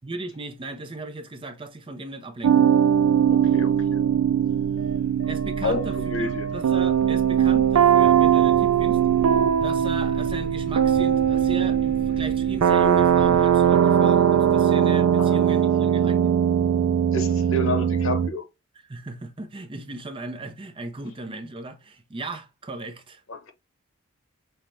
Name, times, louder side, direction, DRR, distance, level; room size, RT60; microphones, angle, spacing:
voice 1, 0.0-2.7 5.3-9.0 9.6-16.3 18.8-23.2, right 2 dB, 25° right, 0.5 m, -36 dB
sound 1, 2.4-18.3, right 9 dB, 90° right, 0.4 m, -20 dB
sound 2, 3.1-16.4, right 1 dB, 35° left, 0.8 m, -39 dB
voice 2, 3.3-4.0 5.6-6.5 15.1-15.5 17.1-18.4 23.3-23.5, left 2 dB, 65° left, 0.9 m, -30 dB
5.5 x 2.2 x 3.1 m
head